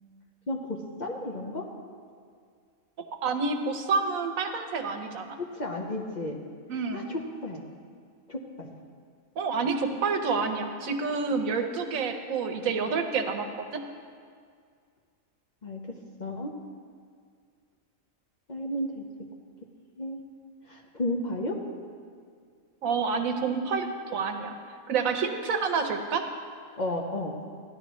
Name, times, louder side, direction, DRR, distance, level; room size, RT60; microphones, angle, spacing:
voice 1, 0.5-1.6 5.4-6.4 6.9-7.6 8.3-8.7 15.6-15.8 16.2-16.5 18.5-19.0 20.0-20.2 20.7-21.6 26.8-27.3, left 1 dB, 40° left, 0 dB, 0.9 m, -33 dB
voice 2, 3.2-5.4 6.7-7.1 9.4-13.8 22.8-24.5 24.9-26.2, right 5 dB, 80° right, 6 dB, 1.2 m, -28 dB
15.0 x 10.5 x 3.1 m, 2.1 s
omnidirectional pair, 1.4 m